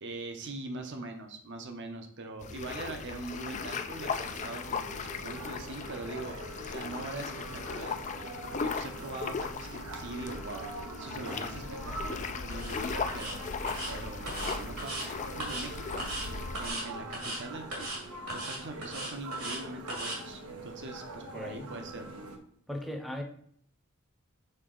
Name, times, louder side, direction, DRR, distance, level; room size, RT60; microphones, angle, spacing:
voice 1, 0.0-8.0 8.4-13.5 13.9-22.1, right 2 dB, 55° right, 6 dB, 0.8 m, -42 dB
sound 1, 2.4-16.7, left 5 dB, 35° left, 0.4 m, -38 dB
sound 2, 3.4-22.4, right 2 dB, 90° right, 1.0 m, -43 dB
sound 3, 12.5-12.7 13.1-13.3 13.7-13.9 14.3-15.1 15.4-15.7 16.0-16.3 16.5-16.8 17.1-17.4 17.7-18.0 18.3-19.6 19.9-20.2, right 1 dB, 70° right, 2.1 m, -37 dB
voice 2, 21.3-21.7 22.7-23.2, left 1 dB, ahead, 2 dB, 0.7 m, -37 dB
6.6 x 4.0 x 3.8 m, 0.64 s
head